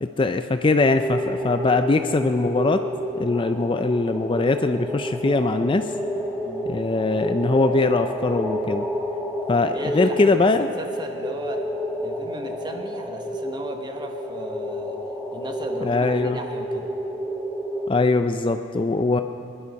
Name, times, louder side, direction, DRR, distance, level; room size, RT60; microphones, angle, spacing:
voice 1, 0.0-2.8 3.2-5.9 6.7-8.8 9.5-10.7 15.8-16.4 17.9-19.2, left 3 dB, 25° left, 8 dB, 0.4 m, -21 dB
sound 1, 0.8-17.9, equal, ahead, 1.3 m, -30 dB
voice 2, 6.4-6.7 9.7-11.7 12.0-15.0 15.3-16.9, right 2 dB, 20° right, 4 dB, 1.1 m, -36 dB
21.5 x 11.0 x 5.3 m, 2.8 s
head